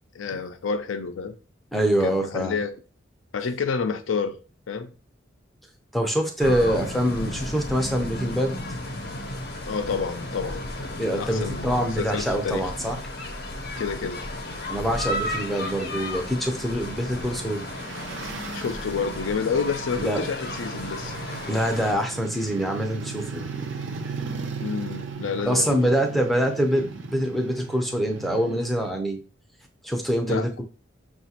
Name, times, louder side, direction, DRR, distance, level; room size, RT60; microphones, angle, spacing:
voice 1, 0.1-1.4 2.0-2.7 3.3-4.4 4.7-4.9 9.7-12.7 13.8-14.3 18.5-21.2 24.6-25.8 30.3-30.6, left 5 dB, 80° left, 0.5 m, -29 dB
voice 2, 1.7-2.6 5.9-8.6 11.0-13.0 14.7-17.7 20.0-20.2 21.5-23.4 25.5-29.2 29.8-30.6, equal, ahead, 0.5 m, -25 dB
sound 1, 6.4-21.9, left 1 dB, 50° left, 0.8 m, -34 dB
sound 2, 15.3-28.9, right 4 dB, 70° right, 0.6 m, -37 dB
5.9 x 2.4 x 2.8 m
head